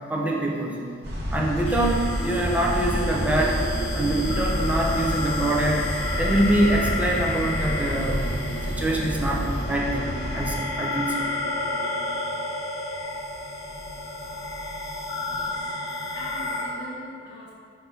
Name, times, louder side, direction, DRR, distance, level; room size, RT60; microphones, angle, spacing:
voice 1, 0.1-0.9 1.3-3.6 3.9-5.9 6.2-8.3 8.7-11.3, right 1 dB, 10° right, -2 dB, 0.7 m, -25 dB
sound 1, 1.0-10.5, equal, 55° right, 1.2 m, -29 dB
sound 2, 1.7-16.6, left 1 dB, 85° left, 1.0 m, -31 dB
voice 2, 15.2-15.7 16.1-17.5, equal, 60° left, -10 dB, 1.1 m, -42 dB
5.6 x 3.6 x 5.8 m, 2.3 s
head